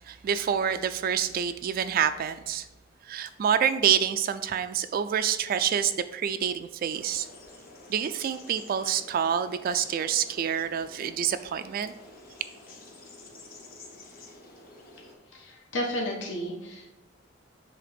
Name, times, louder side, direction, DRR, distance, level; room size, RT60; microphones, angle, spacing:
voice 1, 0.0-2.6 3.1-7.3 7.9-11.9, right 8 dB, 50° right, 0.3 m, -27 dB
sound 1, 6.9-15.1, left 2 dB, 50° left, 1.3 m, -50 dB
voice 2, 15.3-16.9, equal, 70° left, 1.3 m, -32 dB
7.6 x 3.4 x 5.1 m
head